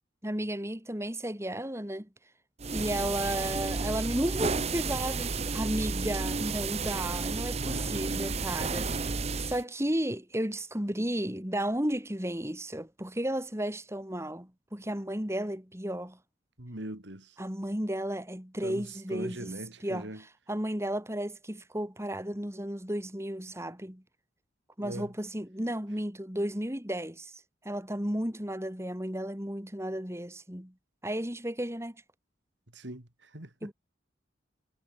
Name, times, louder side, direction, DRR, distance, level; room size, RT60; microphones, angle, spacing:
voice 1, 0.2-2.1 2.7-16.2 17.4-24.0 24.8-30.7 31.0-32.0 33.6-33.7, right 1 dB, 15° right, 3.5 m, -33 dB
sound 1, 2.6-9.6, right 4 dB, 35° right, 0.9 m, -32 dB
voice 2, 7.5-8.4 16.6-17.3 18.6-20.2 24.8-25.1 32.7-33.7, right 1 dB, 70° right, 3.3 m, -41 dB
head